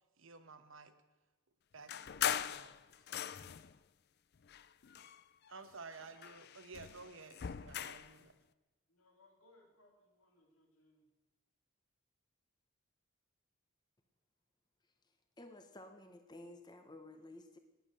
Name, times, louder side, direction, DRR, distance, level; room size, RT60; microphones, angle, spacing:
voice 1, 0.2-0.9 1.7-2.8 5.5-8.3, right 4 dB, 65° right, 1.2 m, -53 dB
sound 1, 1.9-3.8 4.4-5.6 5.9-8.2, left 9 dB, 50° left, 0.4 m, -40 dB
voice 2, 8.9-11.0, left 2 dB, 80° left, 3.3 m, -68 dB
voice 3, 15.0-17.6, left 1 dB, 20° left, 0.8 m, -54 dB
18.5 x 8.3 x 6.7 m
head